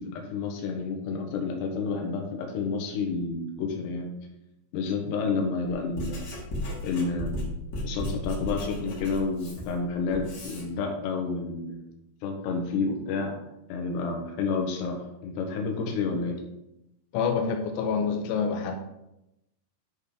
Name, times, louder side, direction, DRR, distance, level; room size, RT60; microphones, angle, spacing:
voice 1, 0.0-4.1 4.7-6.3 6.8-7.6 7.8-11.8 12.2-13.4 13.7-16.4, left 4 dB, 70° left, 1 dB, 3.3 m, -30 dB
Writing, 5.7-10.7, left 1 dB, 45° left, 2.6 m, -35 dB
voice 2, 17.1-18.8, left 6 dB, 90° left, 3 dB, 3.1 m, -27 dB
9.8 x 4.1 x 5.2 m, 0.88 s
omnidirectional pair, 5.4 m